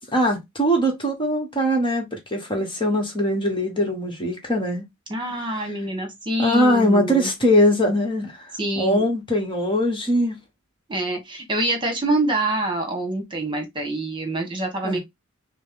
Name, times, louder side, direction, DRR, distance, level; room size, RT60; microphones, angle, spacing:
voice 1, 0.1-4.8 5.5-5.7 6.4-10.3 14.8-15.0, equal, 25° left, 1.3 m, -21 dB
voice 2, 5.1-7.3 8.5-9.0 10.9-15.0, right 1 dB, 25° right, 1.3 m, -25 dB
6.3 x 2.1 x 3.7 m
head